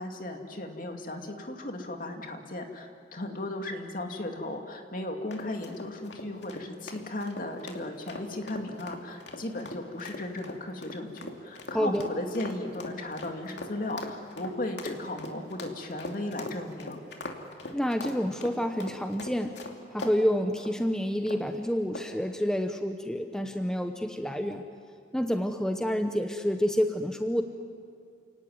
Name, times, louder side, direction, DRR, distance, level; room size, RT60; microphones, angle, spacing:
voice 1, 0.0-17.0, left 1 dB, 50° left, 3 dB, 2.6 m, -36 dB
sound 1, 5.3-20.2 20.6-20.8 21.3-21.5 21.9-22.2, left 2 dB, 70° left, 2.7 m, -41 dB
voice 2, 11.7-12.1 17.7-19.6 19.9-24.6 25.1-27.4, equal, 5° left, 5 dB, 0.9 m, -28 dB
29.0 x 18.0 x 9.5 m, 2.5 s
head